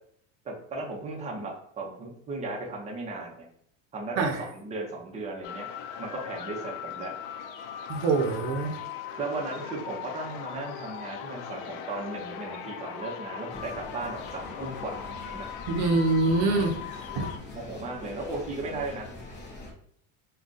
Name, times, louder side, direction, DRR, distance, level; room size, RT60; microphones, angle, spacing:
voice 1, 0.4-3.5 3.9-5.7 6.0-7.1 9.2-15.5 17.5-19.1, right 2 dB, 15° right, -1 dB, 0.6 m, -36 dB
sound 1, 5.4-17.4, left 8 dB, 85° left, 0.5 m, -39 dB
voice 2, 7.9-8.8 15.7-16.8 17.2-17.3, right 3 dB, 65° right, 2 dB, 0.7 m, -25 dB
sound 2, 13.5-19.7, left 2 dB, 25° left, 0.6 m, -43 dB
2.4 x 2.3 x 3.8 m, 0.66 s
cardioid pair, 145°, 41 cm